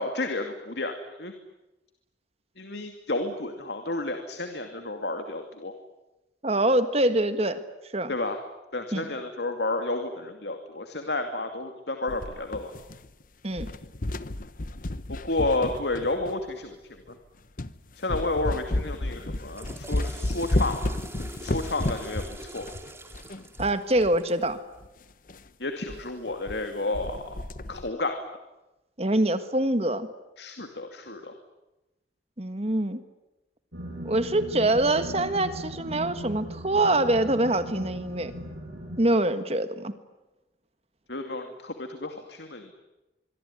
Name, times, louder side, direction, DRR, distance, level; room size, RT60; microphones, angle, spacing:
voice 1, 0.0-1.3 2.6-5.7 8.1-8.4 8.7-12.7 15.1-17.1 18.0-20.8 21.4-22.7 25.6-27.4 27.7-28.2 30.4-31.3 41.1-42.7, left 2 dB, 70° left, 6 dB, 2.5 m, -31 dB
voice 2, 6.4-7.6 7.9-8.1 8.9-9.1 13.4-13.7 23.6-24.6 29.0-30.1 32.4-33.0 34.0-38.3 39.0-39.9, right 1 dB, 35° right, 10 dB, 1.6 m, -24 dB
sound 1, 12.1-13.2 13.5-16.5 17.1-17.2 17.6-17.8 18.1-24.2 24.4-24.5 24.8-24.9 25.3-25.5 25.9-26.0 26.3-26.7 26.9-27.9, left 1 dB, 50° left, 1.0 m, -32 dB
Water / Toilet flush, 19.3-24.5, right 2 dB, 15° right, 2.7 m, -45 dB
sound 2, 33.7-39.0, right 1 dB, 80° right, 7.7 m, -38 dB
25.5 x 23.5 x 9.8 m, 1.0 s
head